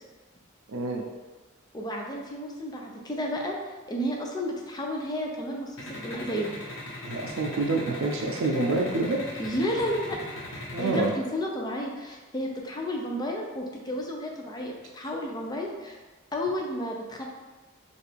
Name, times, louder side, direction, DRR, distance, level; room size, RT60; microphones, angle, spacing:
voice 1, 0.7-1.0 7.0-9.2 10.7-11.1, right 2 dB, 85° right, 1 dB, 0.5 m, -27 dB
voice 2, 1.7-3.6 3.9-6.5 9.4-10.2 10.8-16.0 16.3-17.2, equal, 20° left, 0 dB, 0.5 m, -32 dB
sound 1, 5.8-11.1, left 1 dB, 70° left, 1.0 m, -39 dB
4.7 x 2.5 x 3.3 m, 1.3 s
head